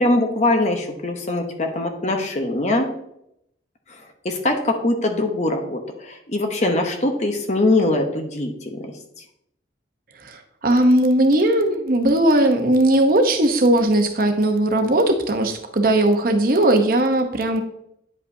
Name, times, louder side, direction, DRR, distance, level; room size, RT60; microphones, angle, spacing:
voice 1, 0.0-2.9 4.2-8.9, left 2 dB, 35° left, 4 dB, 0.8 m, -22 dB
voice 2, 10.2-17.6, right 1 dB, 50° right, 5 dB, 0.8 m, -18 dB
9.7 x 5.2 x 2.7 m, 0.77 s
head